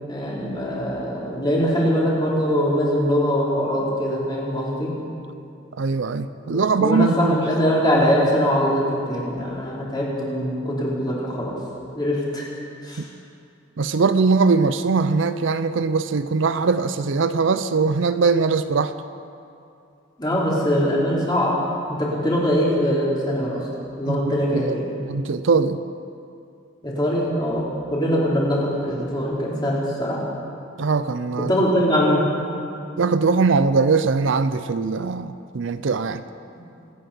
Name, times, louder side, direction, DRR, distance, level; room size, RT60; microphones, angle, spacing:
voice 1, 0.1-4.9 6.4-11.5 11.9-12.5 12.8-13.0 20.2-21.5 21.9-23.6 24.0-24.9 26.8-30.2 31.4-32.3, equal, 20° left, -5 dB, 3.4 m, -22 dB
voice 2, 5.8-7.4 13.0-13.1 13.8-18.9 24.1-24.8 25.1-25.8 30.8-31.5 33.0-36.2, right 4 dB, 65° right, 12 dB, 0.5 m, -21 dB
25.5 x 9.3 x 5.6 m, 2.5 s
head